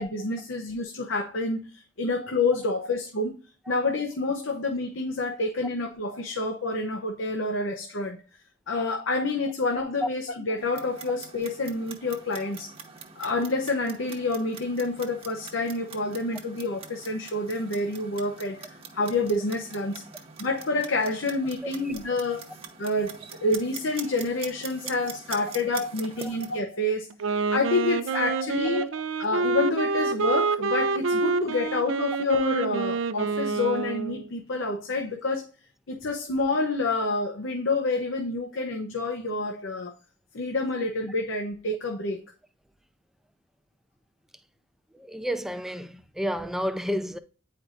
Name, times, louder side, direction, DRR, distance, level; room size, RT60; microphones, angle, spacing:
voice 1, 0.0-3.4 3.7-8.2 8.7-12.7 13.2-20.0 20.4-22.5 22.8-27.1 27.5-35.5 35.9-39.9 40.3-42.2, left 2 dB, 85° left, 0.8 m, -28 dB
Clock, 10.6-26.6, right 6 dB, 30° right, 0.9 m, -44 dB
voice 2, 21.6-21.9 26.2-26.4 28.6-28.8 44.9-47.2, equal, ahead, 0.4 m, -31 dB
Wind instrument woodwind instrument, 27.1-34.3, right 4 dB, 85° right, 0.5 m, -27 dB
9.2 x 4.6 x 2.5 m
head